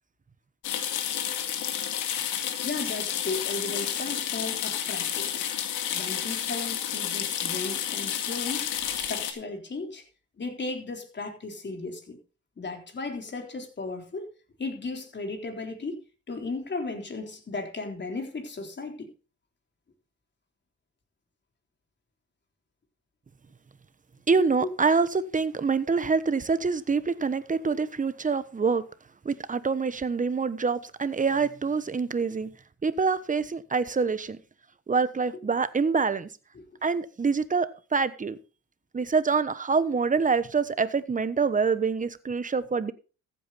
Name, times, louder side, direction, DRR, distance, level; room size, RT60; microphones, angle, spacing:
sound 1, 0.6-9.3, left 9 dB, 90° left, 2.1 m, -30 dB
voice 1, 2.6-5.6 5.9-10.0 10.4-12.2 12.6-14.3 14.6-19.1 24.6-24.7 36.6-36.7, left 3 dB, 35° left, 3.9 m, -35 dB
voice 2, 24.3-28.8 29.2-32.5 32.8-34.4 34.9-36.3 36.8-38.4 38.9-42.9, right 5 dB, 25° right, 1.1 m, -26 dB
14.5 x 8.7 x 4.2 m
cardioid pair, 90°, 30 cm